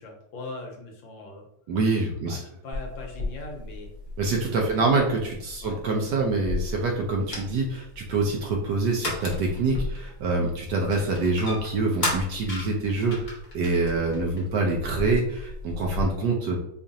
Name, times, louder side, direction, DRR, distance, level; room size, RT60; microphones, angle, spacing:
voice 1, 0.0-1.5 2.3-3.9 4.7-4.8 5.6-5.8, left 2 dB, 75° left, 0 dB, 1.5 m, -40 dB
voice 2, 1.7-2.4 4.2-16.6, right 3 dB, 70° right, 0 dB, 1.1 m, -25 dB
sound 1, 2.7-16.0, left 2 dB, 50° left, 0.5 m, -35 dB
5.0 x 2.4 x 2.6 m, 0.77 s
omnidirectional pair, 2.2 m